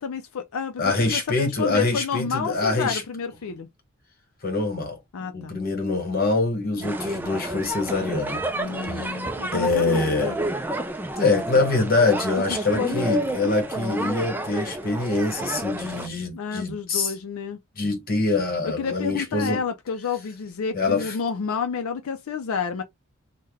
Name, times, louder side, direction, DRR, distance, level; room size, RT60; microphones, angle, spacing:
voice 1, 0.0-3.7 5.1-5.6 6.7-6.9 8.6-10.4 12.5-13.1 16.3-17.6 18.6-22.8, left 6 dB, 85° left, 0.4 m, -30 dB
voice 2, 0.8-3.0 4.4-8.5 8.8-9.2 9.5-10.4 11.2-17.1 17.8-19.6 20.7-21.2, left 3 dB, 45° left, 1.1 m, -24 dB
sound 1, 6.8-16.1, right 1 dB, 10° right, 0.3 m, -30 dB
3.2 x 2.1 x 3.4 m
head